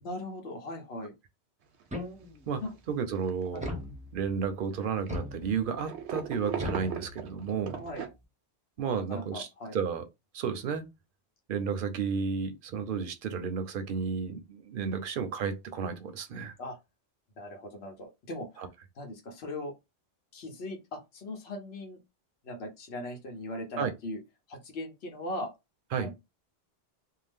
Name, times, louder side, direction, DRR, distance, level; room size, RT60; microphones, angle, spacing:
voice 1, 0.0-1.1 2.6-2.7 3.5-3.7 7.8-8.0 8.8-9.8 16.6-16.8 17.4-18.6 19.0-19.7 20.3-22.0 22.4-24.2 24.5-25.5 26.0-26.1, left 1 dB, 80° left, 1.0 m, -39 dB
sound 1, 1.8-1.9 2.2-2.4 3.2-3.8 4.7-5.1 5.8-8.1, right 8 dB, 85° right, 0.9 m, -38 dB
sound 2, 1.9-2.6 3.6-4.5 5.1-5.9 6.6-7.6, left 1 dB, 10° right, 0.5 m, -39 dB
voice 2, 2.9-3.6 4.1-7.8 8.8-9.5 9.7-10.0 10.3-10.8 11.5-16.5 18.6-18.7 23.8-23.9 25.9-26.1, right 6 dB, 60° right, 0.7 m, -32 dB
2.7 x 2.0 x 3.4 m
omnidirectional pair, 1.1 m